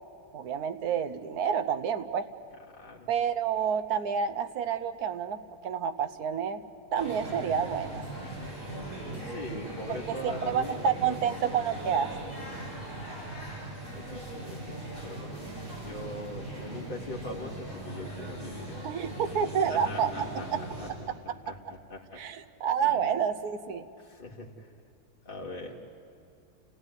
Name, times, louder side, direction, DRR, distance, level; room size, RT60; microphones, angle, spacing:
voice 1, 0.3-2.3 3.1-6.6 6.9-8.0 9.9-10.0 10.2-12.1 18.8-20.2 22.2-23.8, right 7 dB, 85° right, 10 dB, 1.4 m, -29 dB
voice 2, 2.7-3.1 9.2-11.3 13.9-15.5 15.7-18.9 19.3-19.4 19.7-22.2 22.8-23.1 24.0-24.7 25.3-25.7, left 2 dB, 35° left, -1 dB, 2.2 m, -42 dB
sound 1, 6.9-20.9, right 1 dB, 60° right, 6.5 m, -39 dB
29.5 x 16.0 x 9.7 m, 2.5 s
omnidirectional pair, 1.6 m